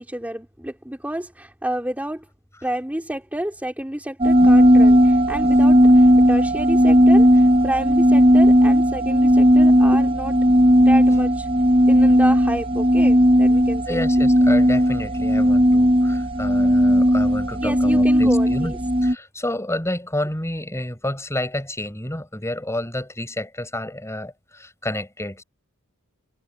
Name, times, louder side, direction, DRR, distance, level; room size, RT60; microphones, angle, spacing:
voice 1, 0.0-2.3 2.6-10.4 10.8-11.5 11.9-14.0 17.6-18.8, right 1 dB, 10° right, 2.7 m, -29 dB
sound 1, 4.2-19.1, equal, 25° right, 1.3 m, -15 dB
voice 2, 13.9-18.7 19.0-25.4, left 1 dB, 15° left, 7.8 m, -29 dB
head